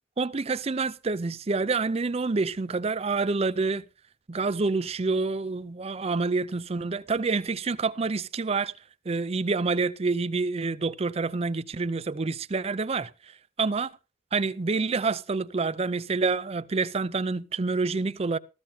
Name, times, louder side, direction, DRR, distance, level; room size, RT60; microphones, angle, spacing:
voice 1, 0.2-3.8 4.3-8.7 9.1-13.1 13.6-13.9 14.3-18.4, right 4 dB, 35° right, 0.5 m, -27 dB
15.0 x 14.5 x 2.8 m
head